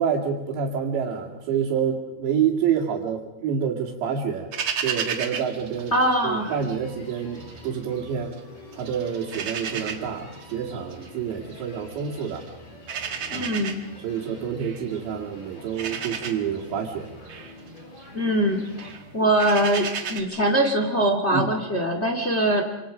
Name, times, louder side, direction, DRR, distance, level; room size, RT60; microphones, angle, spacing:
voice 1, 0.0-4.5 4.8-5.9 6.2-8.3 8.7-12.5 13.3-13.5 14.0-17.1 21.3-21.5, right 7 dB, 85° right, -4 dB, 4.6 m, -27 dB
sound 1, 4.5-6.8 7.1-8.4 8.7-20.2, right 7 dB, 60° right, 1.3 m, -34 dB
sound 2, 5.6-19.0, left 2 dB, 60° left, 7.2 m, -46 dB
voice 2, 5.9-6.5 13.3-13.7 18.1-22.8, right 1 dB, 25° left, 3 dB, 1.3 m, -23 dB
28.0 x 26.5 x 5.1 m, 0.94 s
omnidirectional pair, 5.0 m